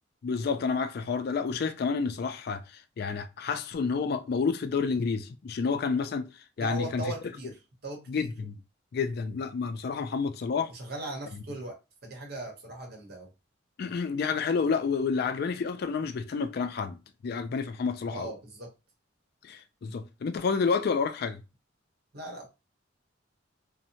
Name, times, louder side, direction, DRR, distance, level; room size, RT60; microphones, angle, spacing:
voice 1, 0.2-6.3 6.6-7.0 8.1-8.6 8.9-10.7 13.8-17.0 17.2-18.3 19.4-21.4, left 5 dB, 55° left, 0.3 m, -29 dB
voice 2, 6.6-7.6 7.8-8.3 10.7-13.3 18.1-18.7 22.1-22.5, right 1 dB, 55° right, 0.9 m, -39 dB
2.7 x 2.0 x 2.7 m
head